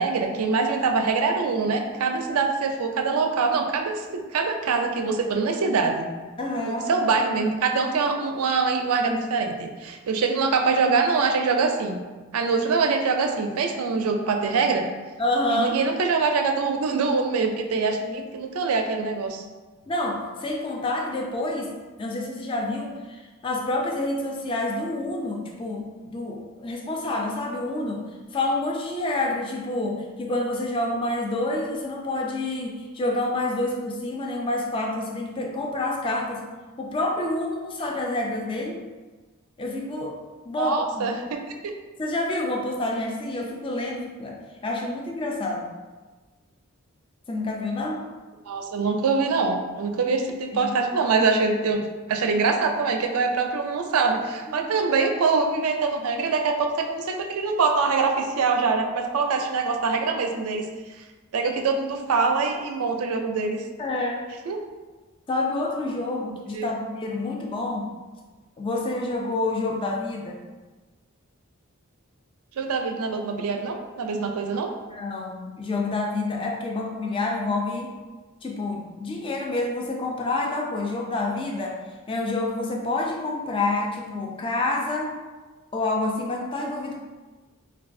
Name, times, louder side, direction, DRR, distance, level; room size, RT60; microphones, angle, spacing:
voice 1, 0.0-6.1 6.6-12.0 12.3-14.8 15.5-19.4 40.6-41.7 48.5-51.8 52.1-60.7 61.3-63.6 64.5-64.6 66.5-66.7 72.6-74.7, right 4 dB, 75° right, 4 dB, 0.4 m, -24 dB
voice 2, 6.4-6.9 15.2-15.8 19.9-21.7 22.0-28.1 28.3-36.4 36.8-38.8 39.6-40.2 40.5-41.1 42.0-45.7 47.3-48.1 50.5-50.7 54.6-54.7 63.8-64.3 65.3-67.9 68.6-70.4 74.9-77.9 78.4-81.8 82.1-85.2 85.7-87.0, left 2 dB, 25° left, 0 dB, 0.3 m, -28 dB
3.9 x 2.2 x 2.5 m, 1.3 s
head